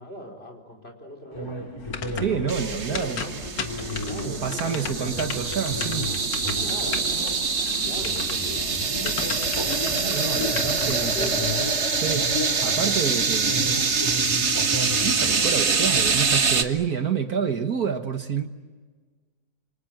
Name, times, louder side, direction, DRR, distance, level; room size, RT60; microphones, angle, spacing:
voice 1, 0.0-1.5 1.9-3.3 3.9-5.2 6.6-7.2 7.5-8.6 9.0-9.4 10.1-11.3, left 1 dB, 35° left, 1 dB, 4.8 m, -39 dB
sound 1, 1.3-16.6, left 1 dB, 15° left, 2.7 m, -35 dB
sound 2, 1.8-11.7, left 5 dB, 85° left, 2.2 m, -36 dB
voice 2, 2.2-3.2 4.3-6.1 10.1-11.4 11.9-13.8 14.7-18.5, right 7 dB, 60° right, 7 dB, 1.8 m, -28 dB
sound 3, 2.5-16.6, right 5 dB, 40° right, 1.6 m, -25 dB
28.0 x 25.0 x 7.8 m, 1.4 s
omnidirectional pair, 1.9 m